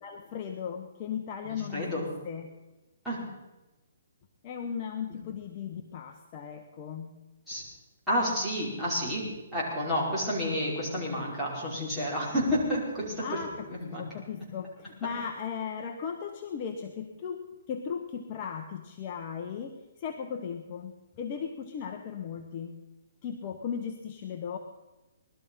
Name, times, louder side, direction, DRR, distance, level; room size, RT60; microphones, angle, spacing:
voice 1, 0.0-2.5 4.4-7.1 13.2-22.8 23.2-24.6, left 7 dB, 30° left, 3 dB, 1.2 m, -37 dB
voice 2, 1.4-2.0 3.0-3.2 7.5-7.6 8.1-13.4 13.7-14.0, equal, ahead, -10 dB, 5.4 m, -30 dB
20.0 x 12.5 x 5.6 m, 1.1 s
hypercardioid pair, 160°, 0 cm